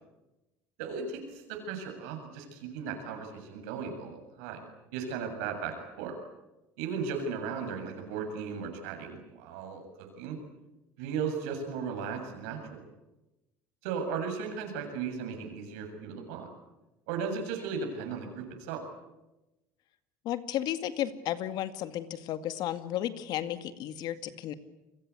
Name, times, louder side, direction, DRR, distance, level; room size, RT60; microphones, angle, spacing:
voice 1, 0.8-4.7 4.9-6.2 6.8-10.4 11.0-12.8 13.8-16.5 17.1-18.8, right 6 dB, 85° right, 5 dB, 7.4 m, -36 dB
voice 2, 20.2-24.5, left 11 dB, 65° left, 10 dB, 2.1 m, -33 dB
29.5 x 22.5 x 8.5 m, 1.0 s
supercardioid pair, 105°, 8 cm